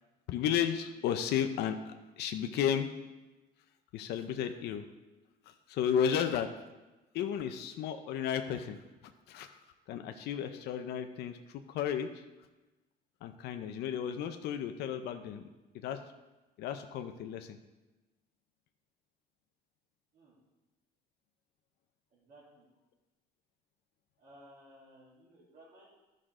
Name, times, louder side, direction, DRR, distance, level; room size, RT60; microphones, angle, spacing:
voice 1, 0.3-2.9 3.9-4.8 5.5-6.5 7.1-9.6 9.9-11.4 11.7-12.2 13.2-15.5 15.8-16.0 16.6-17.6, left 8 dB, 80° left, 7 dB, 0.6 m, -33 dB
voice 2, 22.1-22.6 24.2-25.9, equal, 60° right, -10 dB, 3.3 m, -57 dB
11.5 x 6.4 x 3.7 m, 1.1 s
cardioid pair, 110°, 17 cm